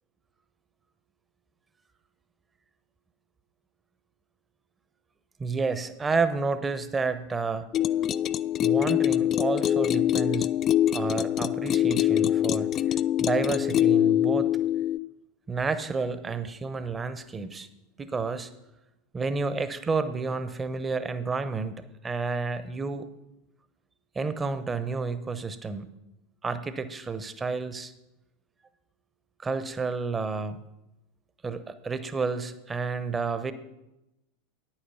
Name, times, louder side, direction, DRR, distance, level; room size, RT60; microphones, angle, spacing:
voice 1, 5.4-7.6 8.6-10.5 10.9-12.7 13.2-14.5 15.5-17.7 18.0-18.5 19.1-23.1 24.1-25.9 26.4-27.9 29.4-30.6 31.4-33.5, right 4 dB, 20° right, 12 dB, 0.8 m, -30 dB
sound 1, 7.7-15.0, left 11 dB, 35° left, 0.3 m, -24 dB
9.9 x 8.8 x 5.6 m, 0.92 s
figure-of-eight pair, 80°, 0 cm